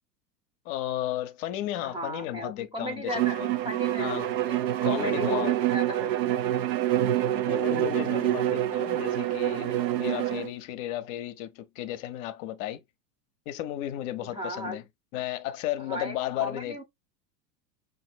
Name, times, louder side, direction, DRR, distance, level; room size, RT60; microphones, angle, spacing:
voice 1, 0.6-3.5 4.0-4.4 4.8-5.7 7.5-12.8 13.5-14.8 15.1-16.8, left 13 dB, 55° left, 0.6 m, -34 dB
voice 2, 1.8-6.4 7.3-7.6 14.2-14.8 15.8-16.8, equal, 10° right, 0.6 m, -36 dB
Bowed string instrument, 3.1-10.5, right 13 dB, 85° right, 0.6 m, -27 dB
5.5 x 2.6 x 2.3 m
hypercardioid pair, 100°, 50 cm